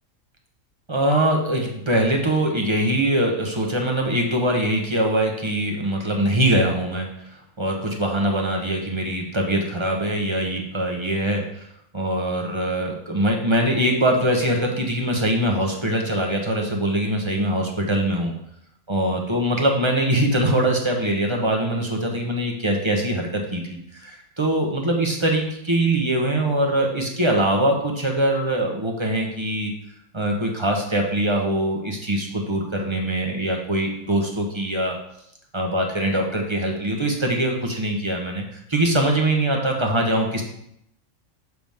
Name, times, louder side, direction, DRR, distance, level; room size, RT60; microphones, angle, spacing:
voice 1, 0.9-11.7 11.9-18.3 18.9-23.6 23.9-29.7 30.1-35.0 35.5-40.4, right 1 dB, 25° right, 1 dB, 1.1 m, -22 dB
7.9 x 6.0 x 3.6 m, 0.75 s
omnidirectional pair, 1.4 m